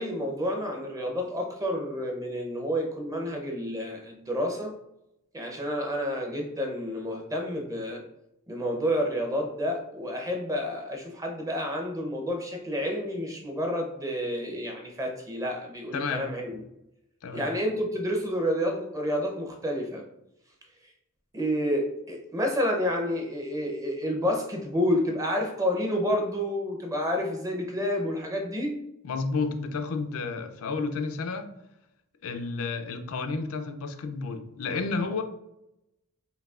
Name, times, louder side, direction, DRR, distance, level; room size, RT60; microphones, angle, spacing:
voice 1, 0.0-4.7 5.3-8.0 8.5-16.6 17.3-20.0 21.3-28.8, equal, 15° right, 2 dB, 0.6 m, -29 dB
voice 2, 15.9-16.3 17.2-17.5 29.0-31.5 32.2-35.2, left 4 dB, 70° left, 6 dB, 0.4 m, -31 dB
5.2 x 2.7 x 2.4 m, 0.85 s
head